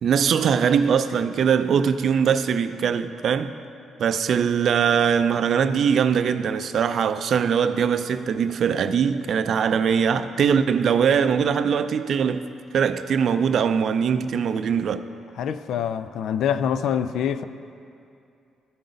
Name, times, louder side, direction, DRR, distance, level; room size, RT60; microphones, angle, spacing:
voice 1, 0.0-3.5 4.0-12.5 12.7-15.1, right 7 dB, 60° right, 0.4 m, -21 dB
voice 2, 15.4-17.4, left 8 dB, 75° left, 0.3 m, -25 dB
14.5 x 5.1 x 3.9 m
cardioid pair, 90°, 0 cm